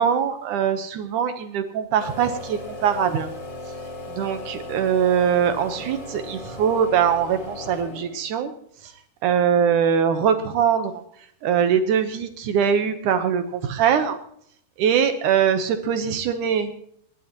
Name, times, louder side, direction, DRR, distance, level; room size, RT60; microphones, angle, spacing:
voice 1, 0.0-3.3 4.1-8.5 8.8-8.9 9.2-11.0 11.4-14.2 14.8-16.8, right 7 dB, 75° right, 8 dB, 1.9 m, -22 dB
sound 1, 2.0-8.3, left 2 dB, 30° left, 2.9 m, -37 dB
28.5 x 11.5 x 3.0 m, 0.67 s
omnidirectional pair, 4.8 m